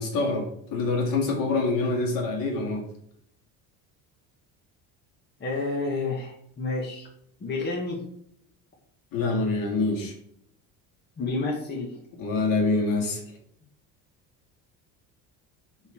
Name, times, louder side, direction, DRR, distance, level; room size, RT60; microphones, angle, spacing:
voice 1, 0.0-2.8 9.1-10.1 12.2-13.2, left 3 dB, 65° left, 0 dB, 2.9 m, -25 dB
voice 2, 5.4-7.1 7.4-8.0 11.2-11.9, left 3 dB, 30° left, -1 dB, 1.9 m, -29 dB
10.0 x 4.2 x 4.7 m, 0.68 s
cardioid pair, 135°, 36 cm